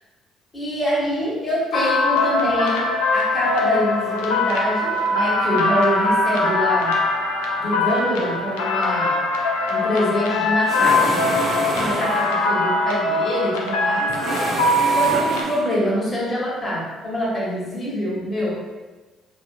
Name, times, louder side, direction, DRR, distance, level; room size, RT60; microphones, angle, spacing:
voice 1, 0.5-2.8 3.1-6.9 7.6-9.2 9.7-11.2 11.8-14.1 14.9-18.6, equal, 30° left, -7 dB, 1.4 m, -25 dB
sound 1, 1.7-15.4, left 2 dB, 80° left, 0.3 m, -22 dB
sound 2, 10.7-12.5 14.1-15.9, right 2 dB, 50° right, 0.4 m, -27 dB
2.7 x 2.6 x 2.5 m, 1.2 s
hypercardioid pair, 50°, 0 cm